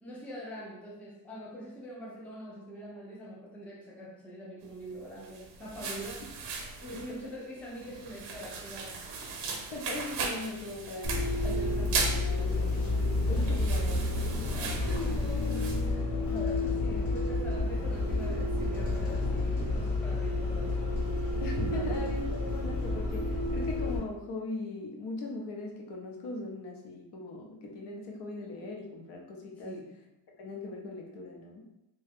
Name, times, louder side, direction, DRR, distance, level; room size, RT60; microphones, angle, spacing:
voice 1, 0.0-6.3 6.8-9.5 13.4-13.5 14.7-20.8 21.7-22.0 29.6-30.0, equal, 5° left, -4 dB, 0.4 m, -44 dB
sound 1, 5.1-15.8, right 4 dB, 70° right, 0.7 m, -38 dB
voice 2, 9.7-12.9 13.3-15.3 21.4-29.8 30.4-31.7, left 2 dB, 65° left, 0 dB, 0.7 m, -40 dB
Bus, 11.0-24.0, left 2 dB, 35° left, 1.0 m, -30 dB
2.8 x 2.2 x 3.4 m, 0.91 s
cardioid pair, 160°, 43 cm